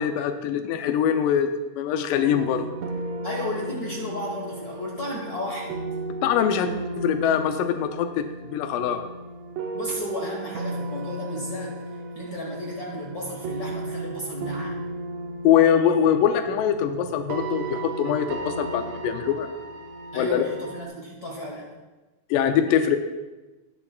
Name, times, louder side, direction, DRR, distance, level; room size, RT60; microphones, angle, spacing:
voice 1, 0.0-2.7 6.2-6.7 7.0-9.0 15.4-19.5 20.2-20.4 22.3-23.0, left 8 dB, 90° left, 7 dB, 2.2 m, -23 dB
sound 1, 2.2-20.9, right 2 dB, 75° right, 1.5 m, -35 dB
voice 2, 3.2-5.7 9.7-14.8 20.1-21.7, left 1 dB, 60° left, -2 dB, 0.9 m, -33 dB
19.0 x 7.1 x 2.3 m, 1.2 s
omnidirectional pair, 3.8 m